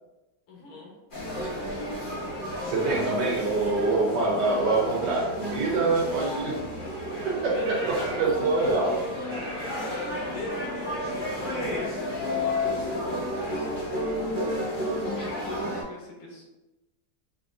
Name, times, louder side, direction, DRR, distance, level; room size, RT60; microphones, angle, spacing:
voice 1, 0.5-1.0 2.8-3.1 7.3-8.2 9.6-13.5 14.8-16.4, left 3 dB, 70° left, -2 dB, 1.7 m, -40 dB
sound 1, 1.1-15.8, left 1 dB, 50° left, 0.6 m, -32 dB
voice 2, 2.6-6.6 7.2-9.0, right 3 dB, 65° right, -3 dB, 1.2 m, -25 dB
sound 2, 6.2-6.3 7.6-8.3 8.5-8.8 9.3-9.8, right 1 dB, 30° right, 1.0 m, -41 dB
5.0 x 2.6 x 2.5 m, 1.0 s
omnidirectional pair, 2.3 m